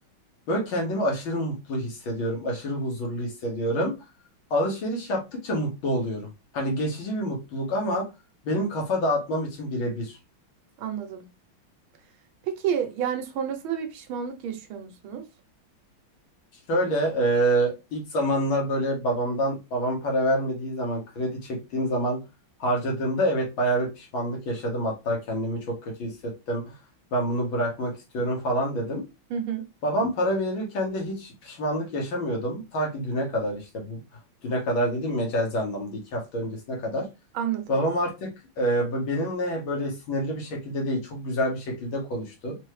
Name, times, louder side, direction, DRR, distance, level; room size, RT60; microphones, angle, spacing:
voice 1, 0.5-3.9 4.5-8.1 8.4-10.2 16.7-22.2 22.6-26.7 27.1-29.0 29.8-34.0 34.4-37.1 37.7-42.6, equal, 70° left, 2.1 m, -27 dB
voice 2, 10.8-11.2 12.4-15.3 29.3-29.7 37.3-37.8, right 8 dB, 75° right, 1.5 m, -30 dB
4.4 x 2.7 x 3.1 m
omnidirectional pair, 2.3 m